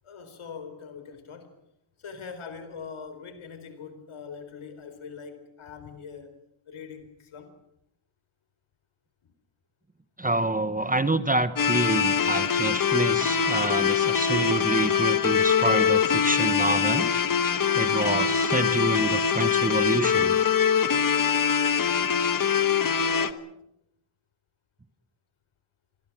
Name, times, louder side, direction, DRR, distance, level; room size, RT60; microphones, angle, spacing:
voice 1, 0.0-1.6 2.0-6.4 6.7-7.6 23.0-23.5, left 6 dB, 80° left, 9 dB, 4.5 m, -42 dB
voice 2, 10.2-17.1 17.7-20.4, right 2 dB, 15° right, 12 dB, 1.1 m, -27 dB
sound 1, 11.6-23.3, left 7 dB, 45° left, 1.3 m, -23 dB
27.0 x 22.0 x 6.1 m, 0.79 s
wide cardioid pair, 110°, 48 cm